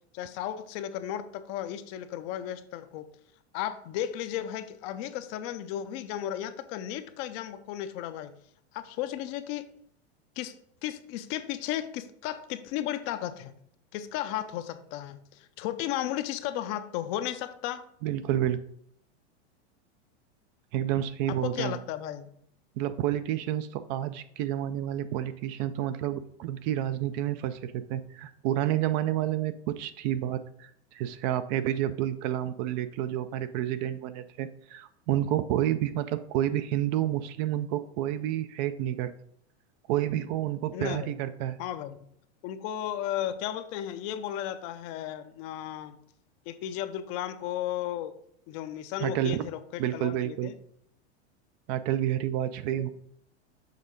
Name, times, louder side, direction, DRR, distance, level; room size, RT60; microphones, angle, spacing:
voice 1, 0.1-3.1 3.5-8.3 8.7-9.6 10.4-10.5 10.8-13.5 13.9-17.8 21.3-22.3 40.7-41.1 41.6-42.0 42.4-46.0 46.5-48.1 48.5-50.5 52.7-52.9, left 11 dB, 45° left, 11 dB, 0.5 m, -34 dB
voice 2, 18.0-18.6 20.7-21.8 22.8-39.1 39.9-41.6 49.0-49.4 49.8-50.5 51.7-52.9, right 12 dB, 45° right, 12 dB, 0.4 m, -29 dB
6.6 x 3.5 x 5.1 m, 0.69 s
supercardioid pair, 130°, 33 cm